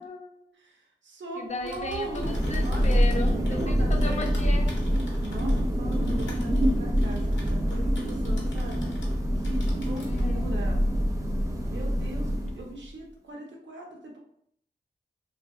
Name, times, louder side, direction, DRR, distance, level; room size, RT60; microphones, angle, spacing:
voice 1, 0.0-0.5 1.3-4.7 10.1-10.6, left 3 dB, 40° left, 3 dB, 0.4 m, -36 dB
voice 2, 0.6-3.0 3.3-4.3 5.2-9.0 9.4-10.8 11.7-14.2, right 2 dB, 80° right, 0 dB, 0.6 m, -40 dB
Typing, 1.5-9.2 9.4-10.3, left 2 dB, 85° left, 0.7 m, -45 dB
Thunder, 1.8-12.8, equal, 20° right, 0.4 m, -25 dB
2.6 x 2.5 x 2.3 m, 0.68 s
wide cardioid pair, 70°, 19 cm